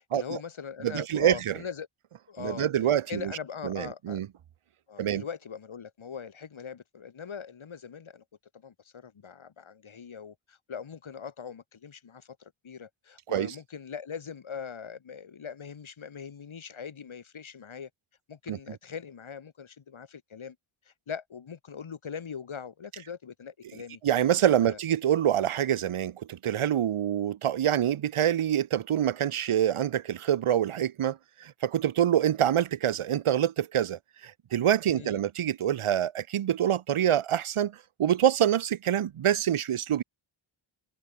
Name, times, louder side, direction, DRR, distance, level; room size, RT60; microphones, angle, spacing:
voice 1, 0.0-1.9 2.3-4.2 4.9-8.2 8.5-17.9 18.3-20.6 20.9-24.0 24.6-24.8 34.9-35.2, left 6 dB, 70° left, 2.6 m, -41 dB
voice 2, 0.8-1.5 2.4-3.3 3.6-4.3 5.0-5.2 13.3-13.5 18.5-18.6 24.0-40.0, right 10 dB, 85° right, 0.9 m, -26 dB
wide cardioid pair, 80°, 49 cm